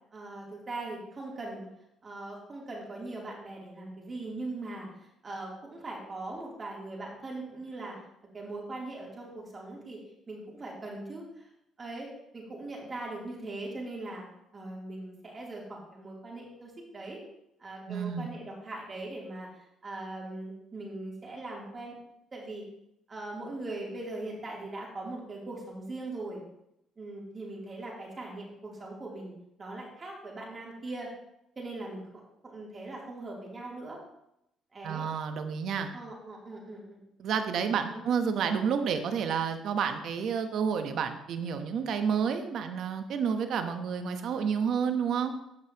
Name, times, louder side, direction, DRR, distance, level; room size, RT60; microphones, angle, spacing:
voice 1, 0.1-1.7 2.0-4.9 5.2-8.0 8.3-10.0 10.3-11.4 11.8-14.2 14.5-17.2 17.6-19.5 19.8-22.0 22.3-22.6 23.1-26.4 27.0-29.3 29.6-31.1 31.6-32.0 32.4-34.0 34.7-35.0 35.9-37.0 37.8-38.0, right 2 dB, 35° right, -3 dB, 3.0 m, -40 dB
voice 2, 17.9-18.3 34.8-35.9 37.2-45.3, right 6 dB, 65° right, 7 dB, 1.0 m, -30 dB
13.5 x 5.4 x 2.9 m, 0.82 s
supercardioid pair, 80°, 0 cm